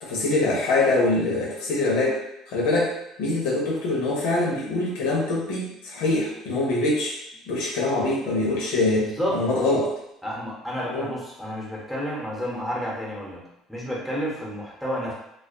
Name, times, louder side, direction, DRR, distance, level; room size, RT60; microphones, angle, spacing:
voice 1, 0.0-2.2 2.5-2.9 3.2-7.1 7.5-9.9 10.9-11.1, left 2 dB, 85° left, -3 dB, 0.7 m, -24 dB
voice 2, 8.9-9.5 10.2-13.4 13.7-15.1, equal, ahead, -4 dB, 0.8 m, -30 dB
2.4 x 2.3 x 2.4 m, 0.82 s
supercardioid pair, 95°, 0 cm